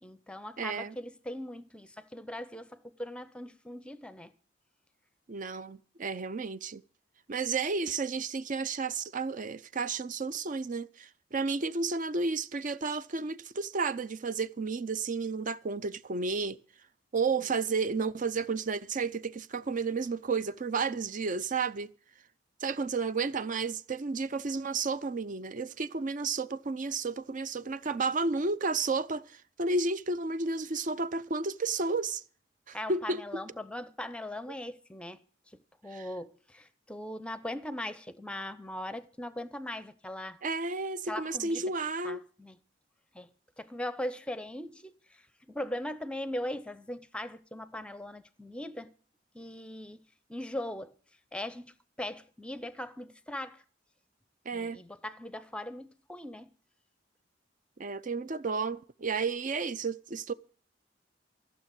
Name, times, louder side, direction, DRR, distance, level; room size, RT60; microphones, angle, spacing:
voice 1, 0.0-4.3 32.7-40.4 41.1-41.6 42.0-42.6 43.1-48.9 49.3-50.0 50.3-50.9 51.3-53.6 54.5-56.5, left 1 dB, 5° left, 0.7 m, -40 dB
voice 2, 0.6-0.9 5.3-6.8 7.3-16.6 17.1-21.9 22.6-32.2 32.7-33.2 35.9-36.1 40.4-42.2 54.5-54.8 57.8-60.3, right 4 dB, 45° right, 0.6 m, -32 dB
15.0 x 6.7 x 8.9 m
head